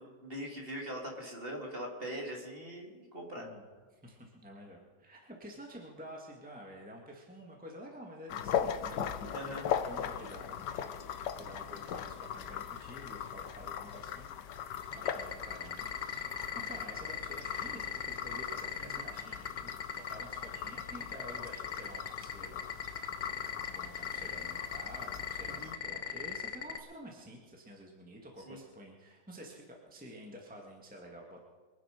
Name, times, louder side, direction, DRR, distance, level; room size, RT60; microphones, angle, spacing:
voice 1, 0.0-3.5 9.3-9.7 18.9-19.0 25.4-25.7 28.4-28.6, equal, 30° right, -1 dB, 2.9 m, -42 dB
voice 2, 3.4-9.2 9.7-14.4 14.7-22.7 23.7-31.4, equal, 5° right, 0 dB, 1.8 m, -50 dB
sound 1, 8.3-25.8, left 9 dB, 70° left, 1.3 m, -39 dB
Simulated Geiger Counter Beeps, 14.8-26.8, left 7 dB, 35° left, 0.9 m, -38 dB
24.0 x 9.7 x 5.2 m, 1.4 s
omnidirectional pair, 2.0 m